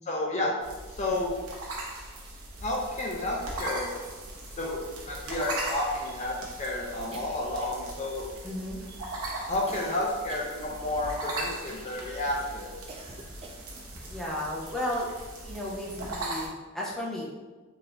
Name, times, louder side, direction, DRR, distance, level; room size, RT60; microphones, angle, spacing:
voice 1, 0.1-0.5 1.0-1.3 2.6-3.9 4.6-8.3 9.5-12.8, left 1 dB, 35° left, -2 dB, 0.5 m, -31 dB
sound 1, 0.6-16.5, right 2 dB, 85° right, 0.9 m, -39 dB
sound 2, 7.1-8.0 8.3-8.9 9.7-11.1 11.7-12.1 12.9-13.9, right 2 dB, 25° right, 0.4 m, -48 dB
voice 2, 8.4-8.8 13.9-15.1 15.4-17.3, left 1 dB, ahead, -6 dB, 0.7 m, -34 dB
4.0 x 2.7 x 3.3 m, 1.3 s
head